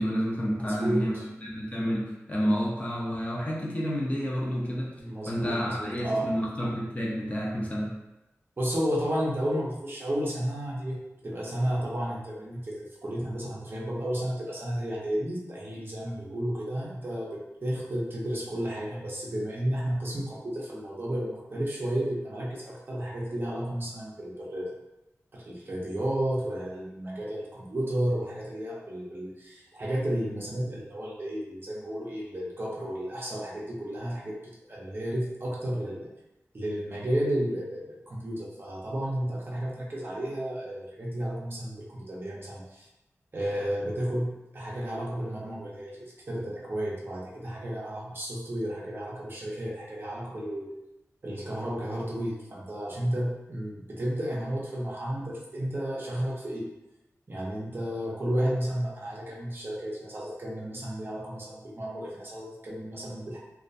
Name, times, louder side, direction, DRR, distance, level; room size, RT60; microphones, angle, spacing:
voice 1, 0.0-1.1 1.4-4.9 5.3-7.9, equal, 25° left, -4 dB, 0.6 m, -29 dB
voice 2, 0.6-1.2 5.0-6.2 8.6-24.7 25.3-34.4 34.7-36.1 36.5-42.9 43.3-50.7 51.2-56.7 57.3-63.4, right 1 dB, 45° right, -4 dB, 0.6 m, -32 dB
2.3 x 2.1 x 2.5 m, 0.96 s
wide cardioid pair, 75°, 5 cm